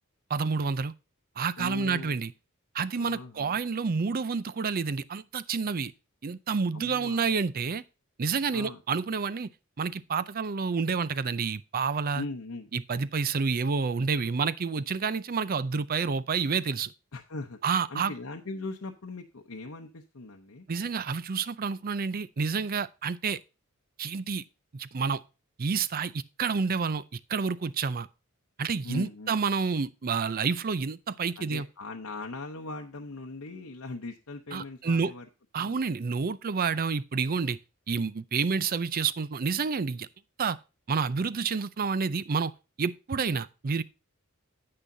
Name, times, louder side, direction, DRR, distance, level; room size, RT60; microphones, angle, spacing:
voice 1, 0.3-0.9 1.4-2.3 2.7-5.9 6.2-7.8 8.2-9.5 9.8-12.2 12.7-16.9 17.6-18.1 20.7-23.4 24.0-24.4 24.7-25.2 25.6-28.1 28.6-31.6 34.5-35.1 35.5-37.6 37.9-40.1 40.4-40.6 40.9-42.5 42.8-43.8, right 5 dB, 45° right, 0.5 m, -29 dB
voice 2, 1.6-2.2 3.0-3.6 6.7-7.3 8.5-8.8 12.1-12.7 17.1-17.6 17.9-20.7 28.8-29.4 31.4-35.3 35.6-35.8, left 2 dB, 70° left, 0.9 m, -39 dB
9.9 x 8.7 x 2.7 m
head